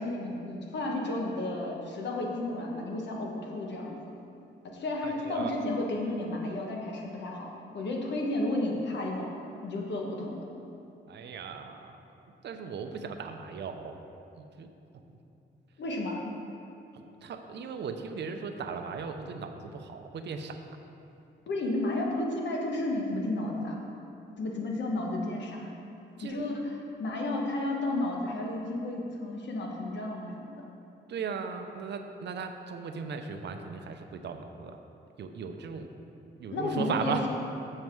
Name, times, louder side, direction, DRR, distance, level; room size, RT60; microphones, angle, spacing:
voice 1, 0.0-4.0 4.6-9.3 9.6-10.5 15.8-16.2 21.5-23.8 24.4-25.7 26.2-30.5 36.5-37.3, left 2 dB, 70° left, -1 dB, 1.2 m, -32 dB
voice 2, 5.0-5.6 11.1-14.0 14.4-15.2 16.9-20.6 26.2-26.5 31.1-34.8 35.2-35.9 36.4-37.3, right 5 dB, 65° right, 6 dB, 0.6 m, -37 dB
7.3 x 6.5 x 4.6 m, 2.7 s
wide cardioid pair, 125°, 19 cm